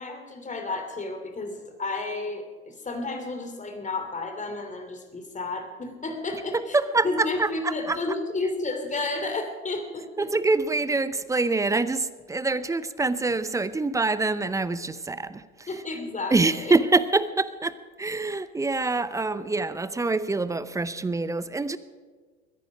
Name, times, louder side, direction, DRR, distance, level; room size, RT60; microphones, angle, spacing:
voice 1, 0.0-6.8 7.0-10.3 15.7-16.7, left 3 dB, 20° left, 5 dB, 2.9 m, -32 dB
voice 2, 6.5-8.0 10.2-15.7 16.3-21.8, right 3 dB, 10° right, 15 dB, 0.6 m, -25 dB
22.0 x 10.0 x 5.1 m, 1.5 s
figure-of-eight pair, 80°, 41 cm